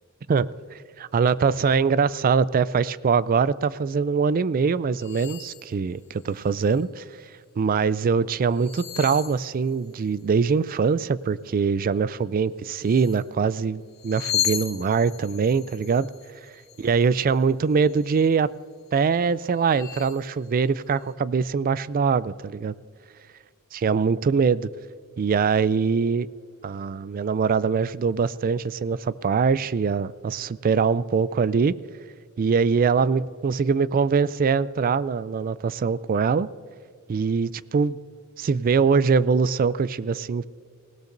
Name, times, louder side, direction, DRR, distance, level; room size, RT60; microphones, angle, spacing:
voice 1, 1.0-7.0 7.6-16.1 16.8-18.5 18.9-22.7 23.8-24.7 25.2-26.3 26.6-31.7 32.4-36.5 37.1-38.0 38.4-40.5, right 5 dB, 40° right, 18 dB, 0.3 m, -23 dB
sound 1, 5.0-5.7 6.1-6.8 8.4-10.1 12.7-13.3 13.9-17.4 17.8-18.3 18.9-19.0 19.5-20.2, left 10 dB, 50° left, 1.1 m, -34 dB
20.0 x 17.5 x 2.6 m, 2.2 s
head